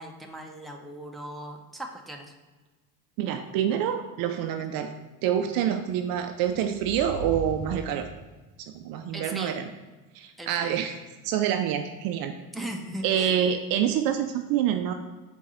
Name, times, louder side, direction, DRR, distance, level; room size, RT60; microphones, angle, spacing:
voice 1, 0.0-2.3 9.1-9.6 10.4-10.8 12.5-13.4, right 1 dB, ahead, 1 dB, 0.7 m, -38 dB
voice 2, 3.2-4.9 5.2-8.1 8.7-9.7 10.1-10.9 11.2-12.3 13.0-14.9, right 9 dB, 50° right, 7 dB, 0.5 m, -26 dB
sound 1, 6.2-8.4, right 2 dB, 90° left, 1.9 m, -39 dB
4.6 x 3.8 x 5.6 m, 1.2 s
figure-of-eight pair, 60°, 48 cm